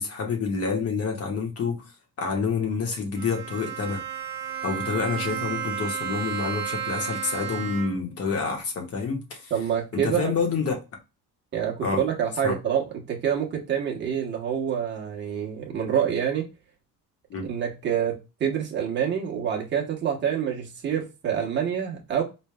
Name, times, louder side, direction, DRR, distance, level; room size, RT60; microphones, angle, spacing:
voice 1, 0.0-4.0 4.6-9.5 9.9-10.7 11.8-12.0 12.4-12.5 17.3-17.5, left 5 dB, 40° left, 1.2 m, -28 dB
Bowed string instrument, 3.1-8.2, right 9 dB, 70° right, 1.3 m, -33 dB
voice 2, 9.5-10.3 11.5-12.8 13.1-16.5 17.5-22.2, right 8 dB, 30° right, 1.0 m, -27 dB
4.4 x 3.2 x 2.2 m
cardioid pair, 165°, 36 cm